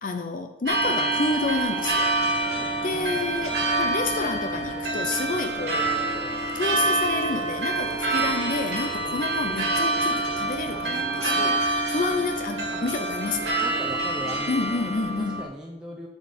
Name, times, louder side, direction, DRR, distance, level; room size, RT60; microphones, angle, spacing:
voice 1, 0.0-2.1 2.8-13.6 14.5-15.5, left 3 dB, 50° left, 6 dB, 0.5 m, -29 dB
sound 1, 0.7-15.4, right 2 dB, 75° right, 2.3 m, -26 dB
voice 2, 2.6-2.9 5.3-5.5 10.7-11.7 12.7-12.8 13.5-14.9 15.2-16.1, equal, 5° right, -3 dB, 0.9 m, -39 dB
7.7 x 6.8 x 4.3 m, 0.95 s
head